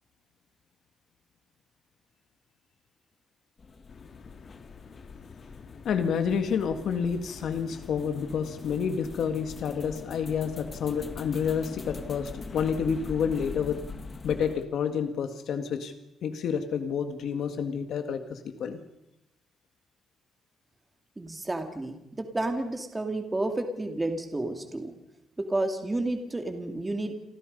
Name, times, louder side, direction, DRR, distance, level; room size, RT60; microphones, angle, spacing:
sound 1, 3.6-14.6, left 4 dB, 30° left, 1.7 m, -43 dB
sound 2, 3.9-13.8, left 5 dB, 45° left, 2.4 m, -50 dB
voice 1, 5.8-13.8 14.2-15.9 16.2-18.8, left 7 dB, 70° left, 7 dB, 1.9 m, -29 dB
voice 2, 21.2-24.9 25.5-27.1, right 2 dB, 15° right, 5 dB, 2.5 m, -31 dB
29.0 x 25.0 x 5.4 m, 0.91 s
wide cardioid pair, 160°, 0 cm